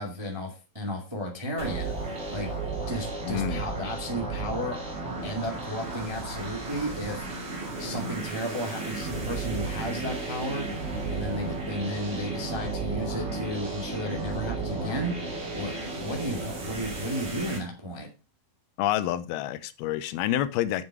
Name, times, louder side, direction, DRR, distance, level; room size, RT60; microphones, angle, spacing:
voice 1, 0.0-2.5 2.9-4.8 5.2-7.3 7.8-10.6 11.1-15.1 15.5-18.1, equal, 15° right, 1.1 m, -33 dB
sound 1, 1.6-17.6, right 3 dB, 40° right, 3.8 m, -34 dB
voice 2, 3.2-3.6 18.8-20.9, left 12 dB, 85° left, 2.6 m, -28 dB
7.8 x 7.5 x 4.8 m
omnidirectional pair, 4.3 m